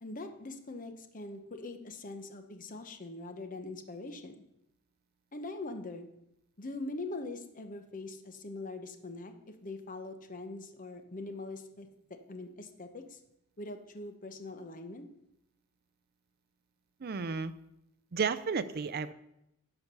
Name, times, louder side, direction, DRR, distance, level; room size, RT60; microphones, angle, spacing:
voice 1, 0.0-4.4 5.3-6.1 6.6-13.2 13.6-15.0, left 2 dB, 35° left, 7 dB, 0.9 m, -42 dB
voice 2, 17.0-17.5 18.1-19.1, right 5 dB, 45° right, 13 dB, 0.5 m, -32 dB
11.0 x 4.6 x 6.8 m, 0.83 s
head